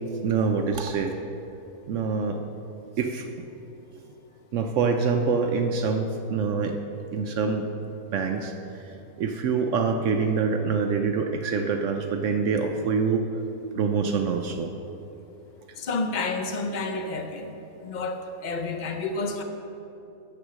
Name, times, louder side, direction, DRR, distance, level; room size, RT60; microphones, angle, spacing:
voice 1, 0.2-1.1 1.9-2.4 3.0-3.3 4.5-6.8 7.1-7.6 8.1-8.5 9.2-13.2 13.7-14.7, right 5 dB, 65° right, 5 dB, 0.8 m, -25 dB
voice 2, 15.8-17.6 17.8-19.4, left 3 dB, 70° left, 5 dB, 0.4 m, -30 dB
7.9 x 6.5 x 6.2 m, 2.8 s
omnidirectional pair, 1.6 m